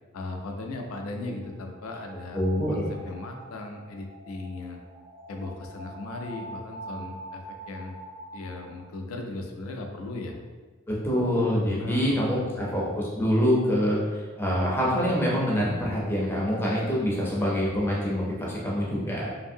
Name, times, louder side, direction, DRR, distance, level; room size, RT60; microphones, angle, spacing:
voice 1, 0.1-2.4 2.7-4.8 5.3-8.0 8.3-10.4 11.8-12.8, left 2 dB, 70° left, 3 dB, 0.4 m, -37 dB
sound 1, 1.2-8.9, right 1 dB, 65° right, 0.9 m, -45 dB
voice 2, 2.3-3.0 11.0-19.3, equal, 10° left, -5 dB, 0.5 m, -25 dB
2.7 x 2.6 x 2.6 m, 1.4 s
head